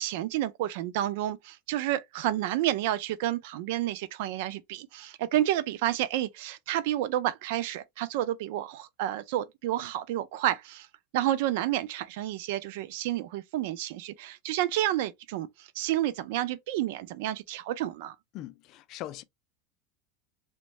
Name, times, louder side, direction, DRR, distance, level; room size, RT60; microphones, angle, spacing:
voice 1, 0.0-10.9 11.1-18.1, right 13 dB, 70° right, 0.4 m, -30 dB
voice 2, 18.3-19.2, left 14 dB, 45° left, 0.3 m, -40 dB
3.0 x 2.2 x 2.8 m
supercardioid pair, 135°, 0 cm